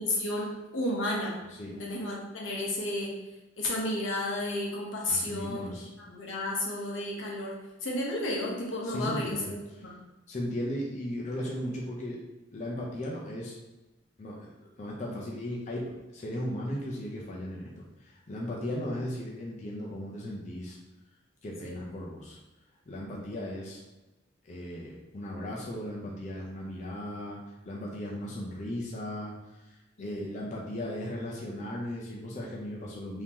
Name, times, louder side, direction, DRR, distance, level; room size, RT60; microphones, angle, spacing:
voice 1, 0.0-1.4 1.7-3.2 3.6-5.7 6.0-9.6 9.8-9.9 21.6-21.8 30.0-30.2, left 1 dB, 85° left, -3 dB, 0.9 m, -32 dB
voice 2, 5.1-5.9 8.8-9.5 10.3-12.2 12.5-13.6 14.2-14.5 14.8-17.7 18.0-20.8 21.4-22.4 22.9-23.8 24.4-27.4 27.6-29.3 29.6-33.2, left 1 dB, 40° left, -3 dB, 0.5 m, -36 dB
3.6 x 2.8 x 2.9 m, 1.0 s
head